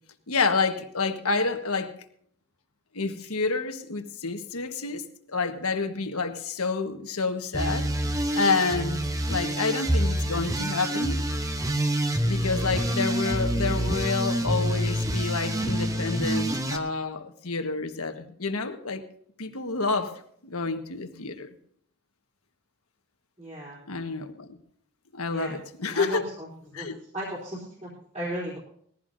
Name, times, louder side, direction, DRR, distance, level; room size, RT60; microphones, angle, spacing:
voice 1, 0.3-1.9 2.9-5.0 5.3-7.9 8.3-9.0 9.3-11.2 12.2-19.0 19.4-21.5 23.9-24.6 25.1-26.3 26.7-27.0, left 4 dB, 80° left, 6 dB, 1.4 m, -29 dB
sound 1, 7.5-16.8, right 1 dB, 15° right, 0.9 m, -27 dB
voice 2, 23.4-23.8 25.3-25.6 25.9-26.9 27.1-28.6, equal, 30° right, -6 dB, 3.6 m, -35 dB
20.5 x 15.0 x 2.7 m, 0.65 s
head